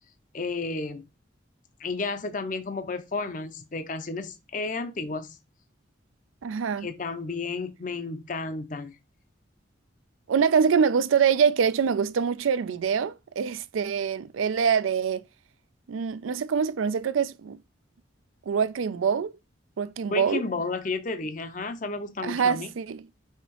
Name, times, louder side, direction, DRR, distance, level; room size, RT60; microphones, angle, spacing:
voice 1, 0.3-1.1 1.8-5.4 6.8-9.0 20.1-22.7, left 3 dB, 40° left, 0.5 m, -32 dB
voice 2, 6.4-6.9 10.3-15.2 15.9-17.6 18.5-19.3 19.8-20.4 22.2-23.1, right 6 dB, 85° right, 0.4 m, -24 dB
5.6 x 3.0 x 2.9 m
head